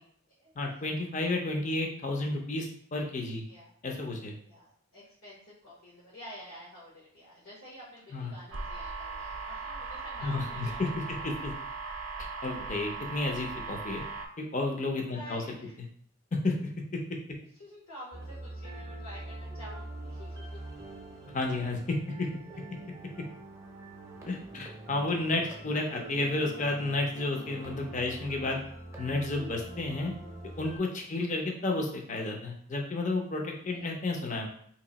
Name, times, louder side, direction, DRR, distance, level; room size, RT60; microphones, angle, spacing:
voice 1, 0.6-3.4 3.8-4.3 8.1-8.3 10.2-11.5 12.4-14.0 14.4-15.4 16.3-16.6 16.9-17.2 21.3-22.3 24.3-28.6 29.0-30.1 30.6-34.5, left 2 dB, 35° left, 1 dB, 0.5 m, -31 dB
voice 2, 4.5-11.3 13.2-13.5 15.1-15.8 17.6-20.6 22.5-22.6 25.3-26.0 31.0-31.2 33.7-33.9, equal, 80° left, -8 dB, 1.3 m, -49 dB
sound 1, 8.5-14.3, right 4 dB, 55° right, 0.6 m, -38 dB
sound 2, 18.1-30.8, right 1 dB, 15° right, 0.6 m, -44 dB
2.9 x 2.7 x 3.9 m, 0.63 s
head